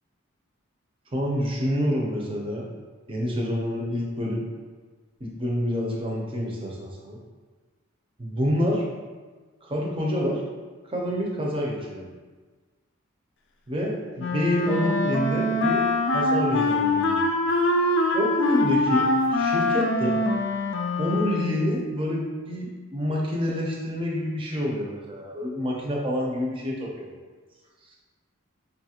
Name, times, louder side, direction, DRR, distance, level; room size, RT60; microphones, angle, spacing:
voice 1, 1.1-2.6 3.1-4.5 5.2-7.2 8.2-8.8 9.6-10.4 10.8-12.1 13.7-15.9 16.1-17.2 18.1-20.2 21.0-27.1, equal, 25° right, -2 dB, 0.6 m, -27 dB
Wind instrument woodwind instrument, 14.2-21.7, left 2 dB, 55° left, 0.3 m, -24 dB
5.2 x 2.4 x 2.8 m, 1.4 s
head